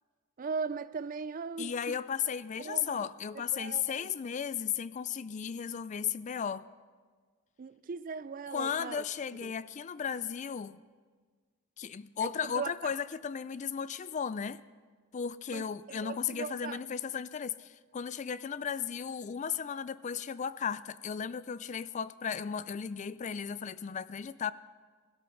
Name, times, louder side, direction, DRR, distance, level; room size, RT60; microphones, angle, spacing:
voice 1, 0.4-2.0 2.6-3.1 3.5-4.1 7.6-9.0 9.4-9.5 12.2-12.9 15.5-16.8, right 5 dB, 40° right, 0.4 m, -39 dB
voice 2, 1.6-6.6 8.5-10.8 11.8-14.6 15.1-24.5, left 7 dB, 35° left, 0.3 m, -35 dB
17.0 x 13.0 x 5.7 m
head